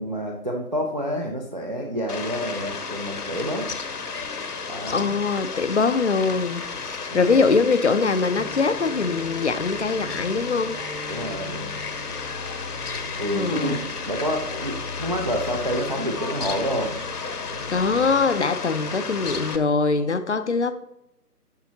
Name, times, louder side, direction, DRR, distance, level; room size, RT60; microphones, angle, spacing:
voice 1, 0.0-3.7 4.7-5.2 7.1-7.5 11.1-11.7 13.2-13.8 14.1-17.0, equal, 30° right, 0.5 m, -28 dB
Fowl, 2.1-19.6, left 5 dB, 75° left, 1.0 m, -33 dB
voice 2, 4.9-10.8 13.3-13.8 17.7-20.8, left 4 dB, 50° left, 0.5 m, -23 dB
sound 1, 8.3-18.2, left 2 dB, 5° right, 0.9 m, -39 dB
10.5 x 5.8 x 2.8 m
figure-of-eight pair, 150°, 47 cm